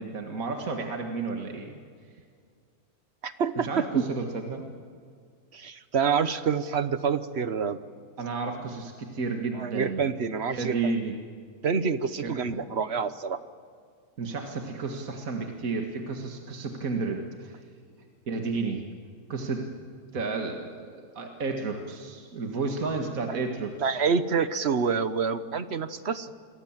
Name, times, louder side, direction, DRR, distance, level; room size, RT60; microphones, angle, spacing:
voice 1, 0.0-1.8 3.6-4.6 8.2-10.0 10.5-11.2 12.2-12.6 14.2-17.6 18.0-18.9 19.3-19.7 20.1-24.0, right 4 dB, 65° right, 3 dB, 2.2 m, -32 dB
voice 2, 3.2-4.0 5.5-7.8 9.6-10.9 11.6-13.4 23.8-26.3, right 6 dB, 45° right, 12 dB, 1.2 m, -27 dB
28.0 x 22.0 x 7.4 m, 2.1 s
omnidirectional pair, 1.6 m